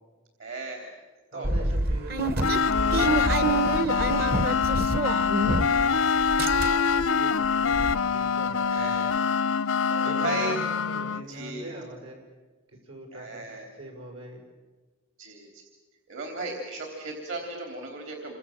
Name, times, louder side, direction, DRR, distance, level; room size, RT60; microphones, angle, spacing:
voice 1, 0.4-0.9 1.3-1.5 5.4-5.8 8.6-9.2 9.9-10.6 11.3-11.7 13.1-13.6 15.2-15.6 16.1-18.4, right 3 dB, 70° right, 2 dB, 3.5 m, -36 dB
voice 2, 1.3-2.2 2.5-4.7 5.5-6.0 6.4-9.1 9.9-12.2 12.7-14.4, right 1 dB, 85° right, 1 dB, 6.3 m, -43 dB
sound 1, 1.4-5.9 6.2-7.0 7.4-7.5 7.7-7.9, right 2 dB, 50° right, 1.0 m, -27 dB
sound 2, 2.4-11.2, left 6 dB, 80° left, 0.7 m, -25 dB
28.5 x 24.5 x 7.4 m, 1.4 s
head